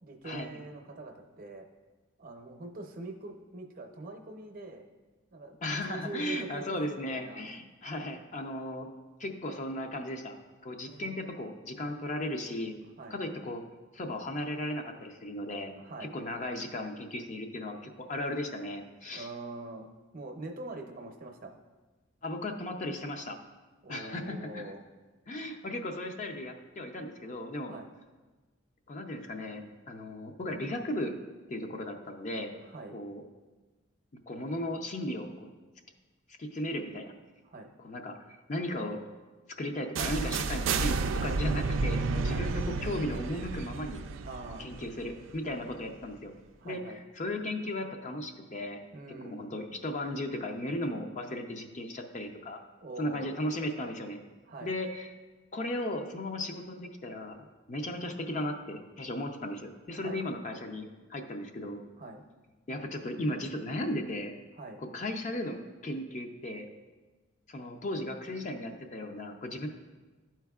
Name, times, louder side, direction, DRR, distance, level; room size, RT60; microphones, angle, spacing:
voice 1, 0.0-1.7 2.2-4.9 5.3-7.4 10.9-11.1 13.0-13.2 15.8-16.1 19.2-19.9 20.1-21.6 23.8-24.8 27.6-27.9 32.6-32.9 37.4-37.7 42.3-42.5 44.2-44.7 46.6-47.0 48.9-49.4 52.8-53.3 54.5-54.7 59.9-60.2 62.0-62.2 64.5-64.8, right 2 dB, 45° right, 3 dB, 0.7 m, -43 dB
voice 2, 5.6-8.9 9.2-10.3 10.6-12.7 13.1-13.6 13.9-15.7 16.0-19.3 22.2-23.4 23.9-24.7 25.3-27.8 28.9-31.2 31.5-32.5 32.9-33.2 34.3-35.5 36.4-37.1 37.8-39.0 39.6-44.0 44.6-46.3 46.6-48.8 49.2-52.6 53.0-54.2 54.6-55.1 55.5-57.4 57.7-61.8 62.7-64.3 64.8-66.7 67.5-69.7, left 1 dB, 40° left, 4 dB, 0.5 m, -36 dB
sound 1, 40.0-45.8, right 4 dB, 85° right, 0.4 m, -31 dB
12.0 x 4.5 x 2.3 m, 1.3 s
head